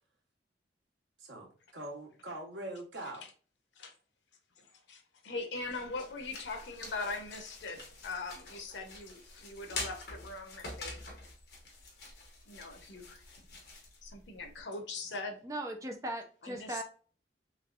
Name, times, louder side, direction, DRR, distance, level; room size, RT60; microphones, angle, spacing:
voice 1, 1.2-3.2, right 1 dB, 85° right, 1.0 m, -43 dB
voice 2, 4.6-11.0 12.5-13.2 14.0-15.4 16.4-16.8, left 3 dB, 90° left, 0.7 m, -41 dB
sound 1, 5.6-14.6, left 3 dB, 65° left, 1.2 m, -46 dB
voice 3, 15.4-16.8, right 1 dB, 20° right, 0.5 m, -38 dB
3.4 x 3.1 x 2.4 m
head